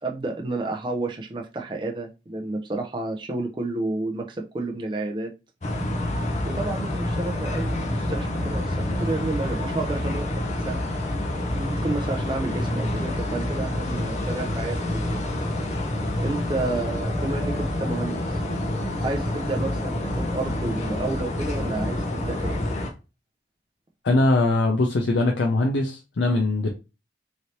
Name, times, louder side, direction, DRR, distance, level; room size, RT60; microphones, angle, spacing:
voice 1, 0.0-5.3 6.4-10.8 11.5-15.3 16.2-18.2 19.0-22.6, right 2 dB, 25° right, 2 dB, 0.4 m, -31 dB
sound 1, 5.6-22.9, left 1 dB, 40° left, 0.6 m, -27 dB
voice 2, 24.0-26.7, left 2 dB, 85° left, 1 dB, 0.5 m, -21 dB
3.1 x 2.7 x 2.8 m, 0.28 s
head